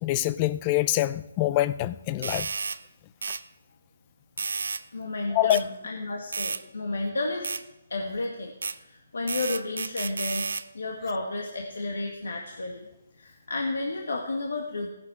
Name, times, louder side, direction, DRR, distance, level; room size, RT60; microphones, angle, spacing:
voice 1, 0.0-2.5 5.3-5.6, left 15 dB, 25° left, 16 dB, 0.5 m, -25 dB
sound 1, 2.2-2.8 3.2-3.4 4.4-4.8 5.5-5.6 6.3-6.6 7.4-7.6 8.6-8.8 9.3-10.7, right 4 dB, 85° right, 0.6 m, -31 dB
voice 2, 4.9-7.5 7.9-8.5 8.8-12.8 13.2-14.9, left 2 dB, 90° left, 1 dB, 1.9 m, -32 dB
17.0 x 10.5 x 4.8 m, 0.96 s
hypercardioid pair, 160°, 0 cm